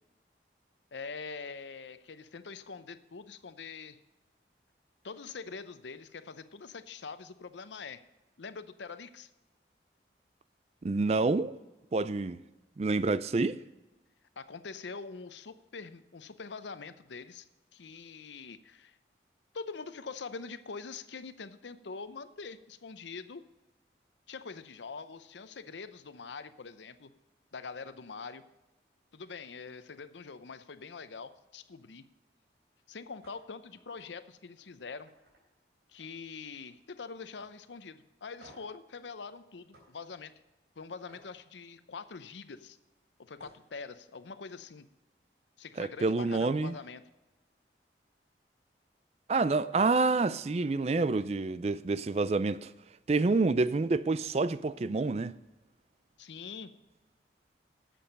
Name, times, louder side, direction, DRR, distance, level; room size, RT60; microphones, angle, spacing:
voice 1, 0.9-4.0 5.0-8.0 8.4-9.3 14.4-17.5 17.7-19.0 19.5-23.4 24.3-27.1 27.5-28.4 29.1-32.0 32.9-35.1 35.9-40.3 40.8-42.8 43.2-44.9 45.6-47.0 56.2-56.7, left 4 dB, 85° left, 0.7 m, -44 dB
voice 2, 10.8-11.5 11.9-12.4 12.8-13.6 45.8-46.7 49.3-52.7 53.1-55.3, right 3 dB, 35° right, 0.4 m, -28 dB
sound 1, 33.2-33.4 33.7-34.1 34.5-34.7 35.1-36.2 36.5-36.9 37.4-37.5 38.4-38.8 39.7-39.9 41.1-41.3 43.0-43.1 43.3-43.6, equal, 85° right, 3.8 m, -58 dB
11.0 x 7.7 x 5.3 m
head